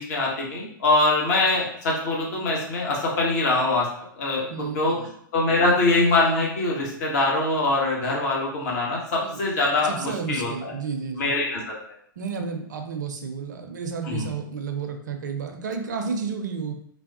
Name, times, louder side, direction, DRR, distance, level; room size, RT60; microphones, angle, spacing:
voice 1, 0.0-3.9 4.2-5.0 5.3-10.7 11.2-11.7 14.0-14.3, left 2 dB, 50° left, -3 dB, 1.0 m, -23 dB
voice 2, 4.5-5.1 9.2-9.4 9.8-11.3 12.2-16.7, right 5 dB, 55° right, 4 dB, 0.5 m, -31 dB
3.2 x 2.0 x 2.7 m, 0.66 s
figure-of-eight pair, 105°, 11 cm